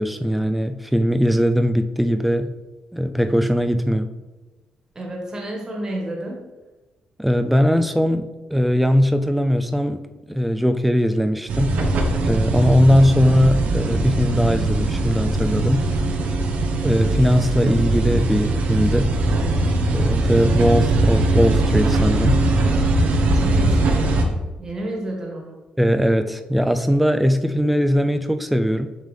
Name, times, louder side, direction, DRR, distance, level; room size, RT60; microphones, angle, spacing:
voice 1, 0.0-2.5 2.9-4.1 7.2-11.8 12.2-15.9 16.8-19.2 19.9-22.5 25.8-29.0, equal, ahead, 8 dB, 0.4 m, -20 dB
voice 2, 4.9-6.4 23.2-24.3 24.6-25.6, right 1 dB, 25° right, -1 dB, 1.6 m, -31 dB
sound 1, 11.5-24.2, right 2 dB, 70° right, 0.9 m, -20 dB
7.4 x 5.3 x 3.3 m, 1.2 s
cardioid pair, 135°, 3 cm